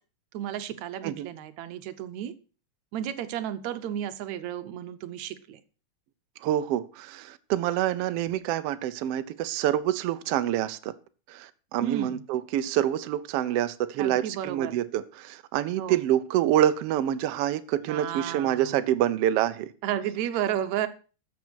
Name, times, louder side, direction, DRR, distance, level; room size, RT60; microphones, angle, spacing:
voice 1, 0.3-2.3 2.9-5.6 11.8-12.2 14.0-14.8 15.8-16.0 17.9-18.8 19.8-20.9, right 11 dB, 70° right, 11 dB, 2.0 m, -32 dB
voice 2, 6.4-10.9 11.3-19.7, right 12 dB, 90° right, 11 dB, 1.3 m, -27 dB
13.5 x 7.2 x 6.2 m, 0.37 s
omnidirectional pair, 3.7 m